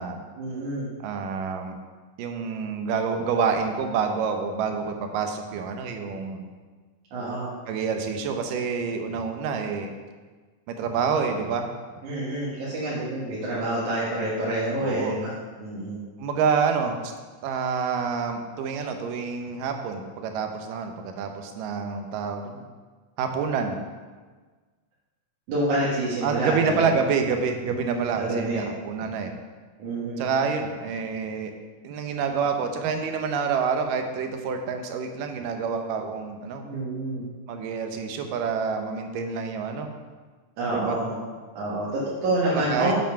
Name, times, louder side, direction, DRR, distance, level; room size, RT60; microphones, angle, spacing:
voice 1, 0.4-0.9 7.1-7.5 12.0-16.0 25.5-26.9 27.7-28.6 29.8-30.2 36.6-37.2 40.6-41.2 41.5-43.0, right 1 dB, 65° right, -8 dB, 3.1 m, -28 dB
voice 2, 1.0-1.8 2.2-6.5 7.7-9.9 10.7-11.7 14.8-15.2 16.2-17.1 17.4-22.6 23.2-23.8 26.2-29.3 30.2-31.5 31.8-36.7 37.5-39.9 40.7-41.0 42.5-42.9, right 6 dB, 90° right, 5 dB, 2.6 m, -27 dB
8.0 x 7.5 x 5.8 m, 1.4 s
omnidirectional pair, 3.7 m